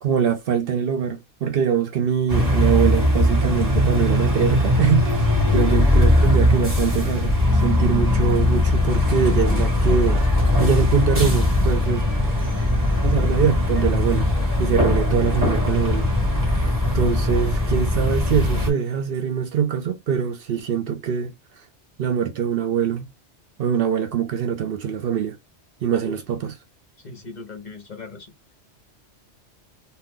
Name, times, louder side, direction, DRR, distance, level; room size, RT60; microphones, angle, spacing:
voice 1, 0.0-10.2 10.6-12.0 12.4-12.7 13.0-14.3 14.6-16.1 16.5-21.3 22.0-23.1 23.6-25.4 25.8-26.5, right 8 dB, 60° right, 0.7 m, -23 dB
sound 1, 2.3-18.7, left 1 dB, 15° right, 1.7 m, -20 dB
voice 2, 27.0-28.3, left 3 dB, 45° left, 1.0 m, -38 dB
2.6 x 2.4 x 3.6 m
omnidirectional pair, 1.2 m